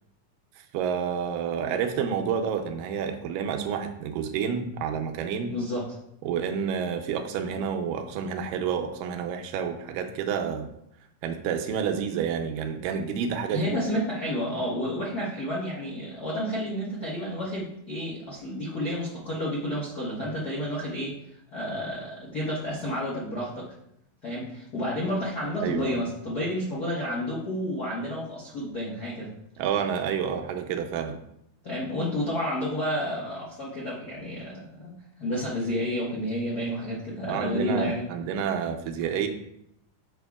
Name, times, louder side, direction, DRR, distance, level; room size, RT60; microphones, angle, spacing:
voice 1, 0.7-5.6 6.2-10.7 11.2-13.8 25.6-26.1 29.6-31.2 37.3-39.3, right 7 dB, 80° right, 6 dB, 2.2 m, -29 dB
voice 2, 5.5-5.9 13.5-21.1 21.5-23.7 24.2-29.3 31.6-34.9 35.2-38.1, equal, 55° left, -6 dB, 1.1 m, -30 dB
9.1 x 6.0 x 2.4 m, 0.77 s
omnidirectional pair, 4.0 m